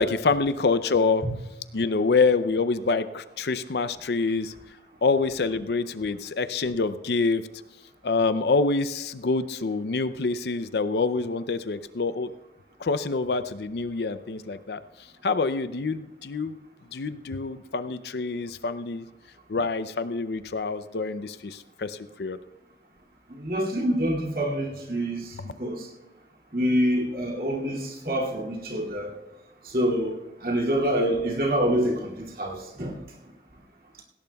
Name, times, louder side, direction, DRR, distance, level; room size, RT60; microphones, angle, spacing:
voice 1, 0.0-1.2 1.7-4.5 5.0-7.4 8.0-12.3 12.8-14.8 15.2-16.6 16.9-19.1 19.5-22.4, left 4 dB, 70° left, 13 dB, 0.5 m, -26 dB
voice 2, 23.3-25.9 26.5-29.1 29.6-30.2 30.4-33.0, equal, 55° right, -1 dB, 2.4 m, -26 dB
17.5 x 17.0 x 2.3 m, 1.1 s
head